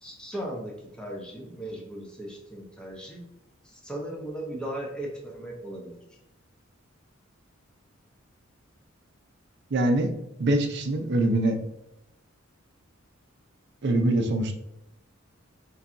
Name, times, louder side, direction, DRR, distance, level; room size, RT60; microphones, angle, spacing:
voice 1, 0.0-3.2 3.6-5.9, right 1 dB, 5° left, -2 dB, 0.8 m, -37 dB
voice 2, 9.7-10.1 10.4-11.6 13.8-14.5, right 1 dB, 60° right, 5 dB, 0.5 m, -23 dB
5.5 x 2.3 x 2.6 m, 0.83 s
head